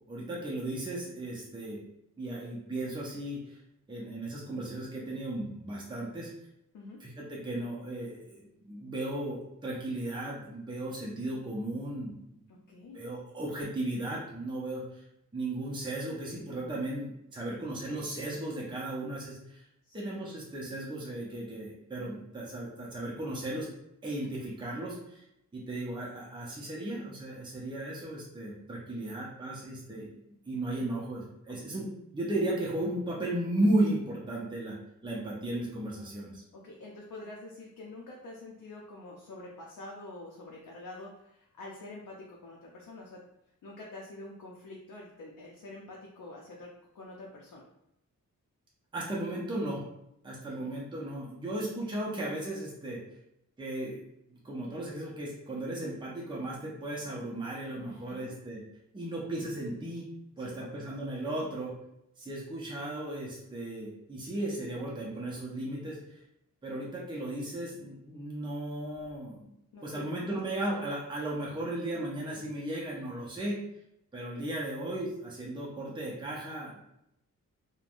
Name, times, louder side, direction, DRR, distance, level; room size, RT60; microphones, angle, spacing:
voice 1, 0.1-1.8 2.2-3.6 3.9-6.3 7.0-12.4 12.9-15.0 15.3-19.6 19.9-23.7 24.0-25.3 25.5-30.1 30.5-31.9 32.1-34.8 35.0-36.4 48.9-49.9 50.2-53.0 53.6-54.0 54.3-58.6 58.9-60.1 60.4-61.7 62.2-66.2 66.6-69.5 69.8-73.6 74.1-76.8, right 1 dB, 15° right, -5 dB, 0.6 m, -35 dB
voice 2, 12.5-13.0 19.8-20.0 31.5-31.6 36.5-43.2 43.6-47.6 50.5-50.7 57.8-58.3 60.4-60.8 69.7-70.1, left 2 dB, 75° left, -3 dB, 0.6 m, -47 dB
3.1 x 2.2 x 2.5 m, 0.81 s
wide cardioid pair, 140°, 32 cm